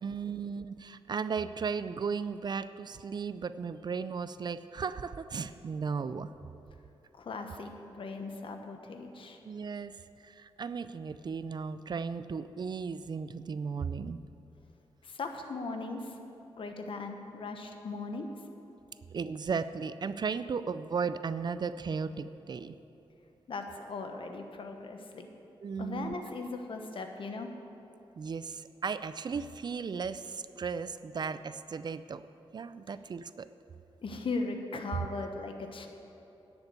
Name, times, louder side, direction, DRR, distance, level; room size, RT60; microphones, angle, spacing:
voice 1, 0.0-6.3 9.4-10.0 10.2-14.2 19.1-22.8 25.6-26.1 28.2-32.2 32.5-33.5, right 5 dB, 45° right, 13 dB, 0.4 m, -35 dB
voice 2, 7.1-9.4 15.0-16.2 16.6-18.3 23.5-25.3 25.8-27.5 34.0-35.9, left 3 dB, 60° left, 5 dB, 1.2 m, -38 dB
10.5 x 7.1 x 8.2 m, 2.9 s
cardioid pair, 90°, 10 cm